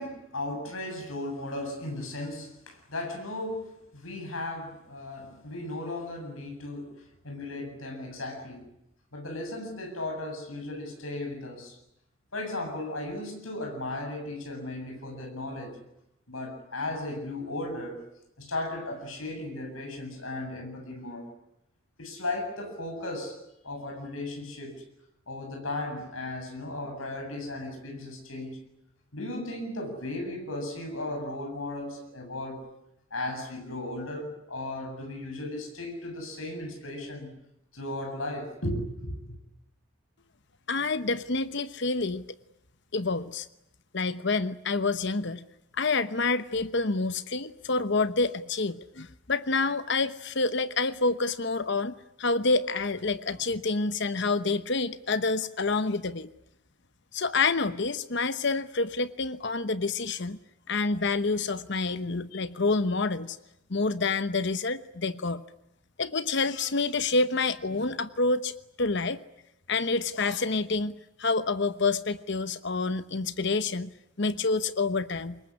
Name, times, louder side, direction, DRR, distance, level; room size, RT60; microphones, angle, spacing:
voice 1, 0.0-8.7 9.1-11.8 12.3-15.8 16.3-18.0 18.4-21.3 22.0-24.8 25.3-28.6 29.1-32.6 33.1-37.3 37.7-39.4, left 2 dB, 80° left, 7.7 m, -36 dB
voice 2, 40.7-42.2 42.9-43.5 43.9-45.4 45.8-56.3 57.1-60.4 60.7-63.4 63.7-65.4 66.0-69.2 69.7-73.9 74.2-75.4, left 3 dB, 55° left, 1.0 m, -28 dB
25.5 x 21.5 x 9.9 m
head